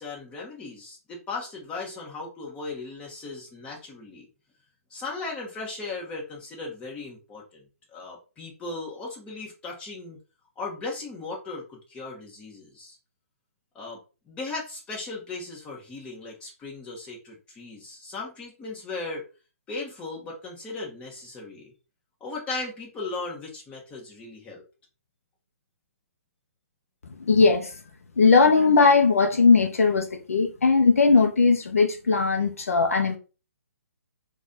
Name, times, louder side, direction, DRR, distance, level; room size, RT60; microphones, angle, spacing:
voice 1, 0.0-4.3 4.9-7.6 7.9-10.2 10.6-13.0 13.7-14.0 14.3-19.2 19.7-21.7 22.2-24.6, left 3 dB, 15° left, 1.3 m, -37 dB
voice 2, 27.2-27.7 28.2-33.2, left 4 dB, 65° left, 0.7 m, -19 dB
3.9 x 2.5 x 3.9 m
figure-of-eight pair, 135°, 8 cm